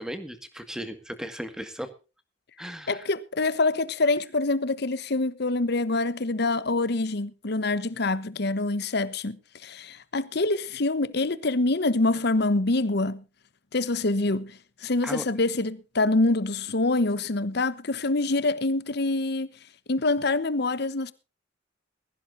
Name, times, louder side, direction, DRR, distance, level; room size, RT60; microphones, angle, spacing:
voice 1, 0.0-1.9 2.6-3.1 15.0-15.2, equal, 5° right, 1.8 m, -36 dB
voice 2, 2.9-13.2 13.7-19.5 19.9-21.1, left 2 dB, 60° left, 1.0 m, -25 dB
21.0 x 15.0 x 2.6 m
head